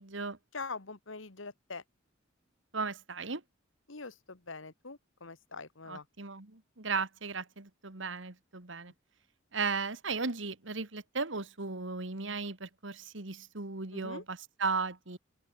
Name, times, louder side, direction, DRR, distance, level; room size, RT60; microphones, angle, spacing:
voice 1, 0.0-0.4 2.7-3.4 5.9-8.9 9.5-15.2, right 4 dB, 65° right, 1.9 m, -36 dB
voice 2, 0.5-1.8 3.9-6.1 13.9-14.2, left 4 dB, 75° left, 1.9 m, -43 dB
open air
head